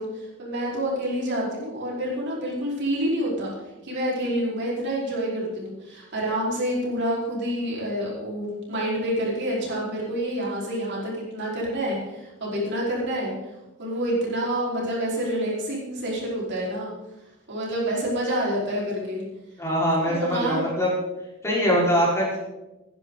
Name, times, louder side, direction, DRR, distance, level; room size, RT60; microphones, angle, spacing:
voice 1, 0.0-3.5 3.8-13.3 13.8-16.9 17.5-19.2 20.0-20.6, right 1 dB, 55° right, -4 dB, 4.7 m, -28 dB
voice 2, 19.6-20.9 21.4-22.4, equal, 15° left, -6 dB, 4.9 m, -22 dB
19.0 x 10.5 x 4.0 m, 1.0 s
head